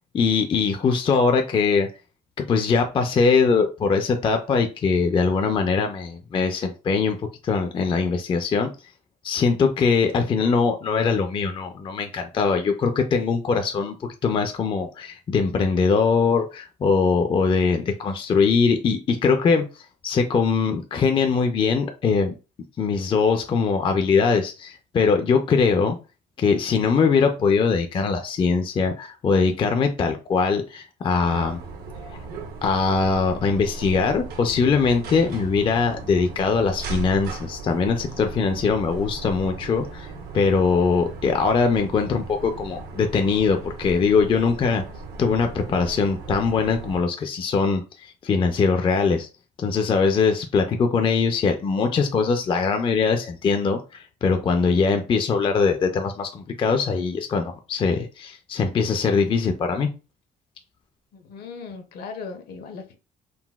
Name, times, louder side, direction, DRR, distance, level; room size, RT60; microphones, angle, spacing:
voice 1, 0.1-1.9 2.4-8.7 9.2-19.7 20.0-22.3 22.8-26.0 26.4-31.6 32.6-44.8 45.2-49.3 49.6-59.9, left 5 dB, 30° left, 0.4 m, -22 dB
sound 1, 31.2-47.0, right 3 dB, 70° right, 0.8 m, -37 dB
voice 2, 61.1-62.9, left 5 dB, 65° left, 0.7 m, -37 dB
3.9 x 2.2 x 2.3 m
cardioid pair, 110°, 17 cm